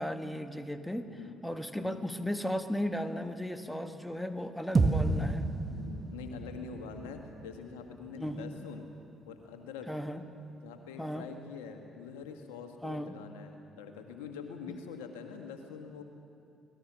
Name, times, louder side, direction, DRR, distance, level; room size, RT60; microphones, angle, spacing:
voice 1, 0.0-5.5 8.2-8.6 9.9-10.2 11.0-11.3 12.8-13.1 14.7-14.8, equal, 5° left, 7 dB, 1.7 m, -36 dB
voice 2, 1.0-1.4 1.7-2.0 5.6-8.8 9.3-9.9 10.6-16.0, left 6 dB, 80° left, 5 dB, 1.5 m, -45 dB
sound 1, 4.7-9.1, right 3 dB, 35° right, 1.9 m, -32 dB
24.5 x 18.5 x 6.2 m, 2.6 s
hypercardioid pair, 50°, 0 cm